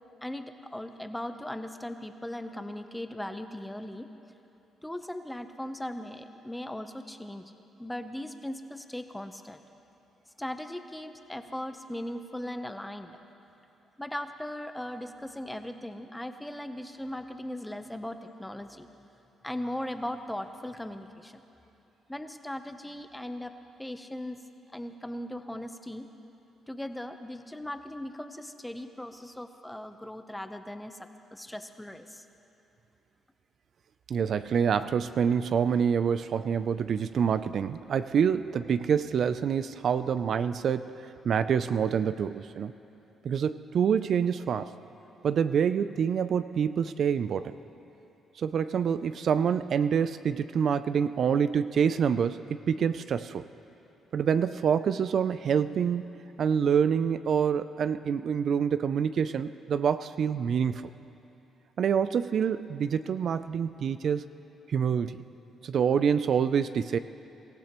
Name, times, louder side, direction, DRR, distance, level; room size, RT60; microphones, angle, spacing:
voice 1, 0.2-4.1 4.8-7.5 7.8-9.7 10.4-13.2 14.0-18.9 19.4-21.4 22.1-23.5 23.8-24.4 24.7-26.1 26.7-31.0 31.3-32.3, left 1 dB, 5° left, 8 dB, 0.8 m, -38 dB
voice 2, 34.1-40.9 41.2-42.7 43.2-44.7 45.2-47.5 48.4-53.5 54.1-60.9 61.8-64.2 64.7-65.2 65.6-67.0, right 7 dB, 60° right, 12 dB, 0.4 m, -26 dB
24.0 x 15.5 x 3.0 m, 2.9 s
cardioid pair, 90°, 0 cm